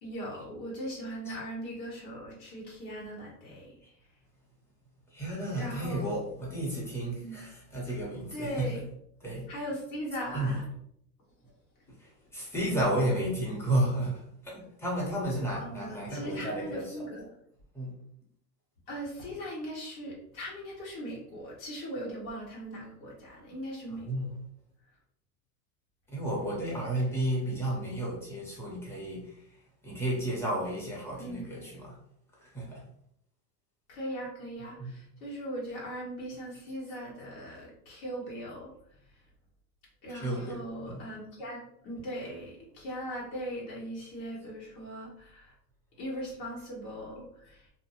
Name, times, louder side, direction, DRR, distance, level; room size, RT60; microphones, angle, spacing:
voice 1, 0.0-3.7 5.5-6.1 7.2-7.4 8.3-8.8 9.5-10.7 15.6-17.4 18.9-24.1 26.7-26.9 31.1-31.5 33.9-38.7 40.0-45.5 46.0-47.7, equal, 75° left, -5 dB, 1.3 m, -39 dB
voice 2, 5.1-8.7 9.2-9.4 10.3-10.5 12.0-16.9 17.7-17.9 24.0-24.3 26.1-29.4 29.8-32.0 32.4-32.8 34.8-34.9 40.2-40.6 40.9-41.0, right 1 dB, 5° left, -5 dB, 0.9 m, -32 dB
2.6 x 2.2 x 2.9 m, 0.70 s
supercardioid pair, 110°, 50 cm